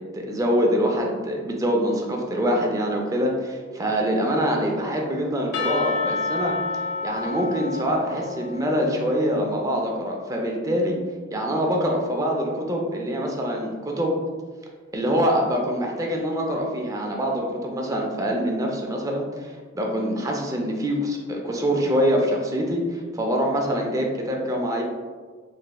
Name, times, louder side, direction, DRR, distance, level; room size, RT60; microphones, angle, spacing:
voice 1, 0.0-6.6 7.0-11.0 11.3-14.1 14.9-24.8, equal, 15° right, 0 dB, 0.4 m, -24 dB
Percussion / Church bell, 5.5-9.4, left 3 dB, 60° left, 0.4 m, -30 dB
3.2 x 2.9 x 2.2 m, 1.5 s
head